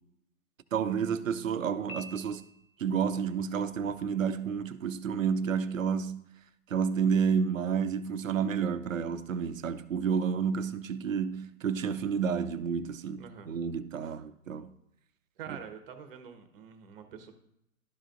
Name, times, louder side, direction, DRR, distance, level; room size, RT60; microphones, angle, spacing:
voice 1, 0.7-2.4 2.8-6.2 6.7-14.7, right 6 dB, 60° right, 0.7 m, -30 dB
Piano, 1.9-3.0, left 1 dB, 70° left, 0.9 m, -47 dB
voice 2, 13.2-13.5 15.4-17.3, right 7 dB, 40° right, 1.1 m, -46 dB
12.0 x 5.0 x 2.5 m
figure-of-eight pair, 125°, 44 cm